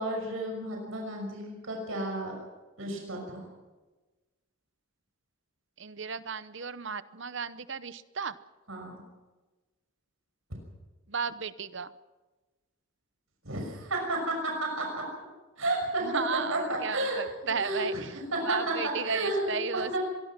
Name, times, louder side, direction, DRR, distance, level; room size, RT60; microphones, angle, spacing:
voice 1, 0.0-2.3 2.8-3.4 8.7-8.9 13.4-15.1 15.6-16.1 16.5-17.2 17.6-18.0 18.3-20.0, right 1 dB, 70° right, 1 dB, 6.1 m, -32 dB
voice 2, 5.8-8.3 11.1-11.9 16.0-18.1 18.4-20.0, right 5 dB, 55° right, 14 dB, 0.9 m, -34 dB
24.5 x 21.5 x 6.0 m, 1.2 s
head